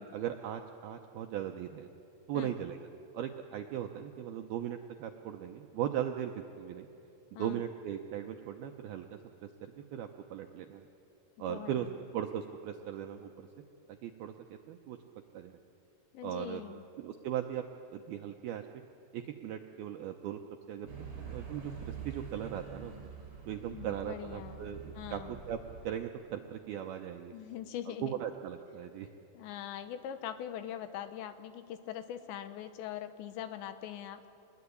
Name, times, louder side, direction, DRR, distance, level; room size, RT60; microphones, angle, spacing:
voice 1, 0.0-1.9 2.3-2.9 3.1-6.9 7.4-10.9 11.4-11.9 12.1-13.5 13.9-15.0 15.3-15.6 16.2-16.6 17.0-17.6 17.9-18.6 19.1-20.4 20.7-20.9 21.2-22.9 23.5-25.6 25.8-27.3 27.9-29.1, right 10 dB, 85° right, 4 dB, 2.2 m, -38 dB
voice 2, 11.5-11.9 16.1-16.8 23.6-25.4 27.3-28.2 29.3-34.3, left 10 dB, 75° left, 10 dB, 3.0 m, -42 dB
sound 1, 20.9-25.9, right 6 dB, 30° right, 5.4 m, -46 dB
26.0 x 20.5 x 9.7 m, 2.9 s
omnidirectional pair, 5.5 m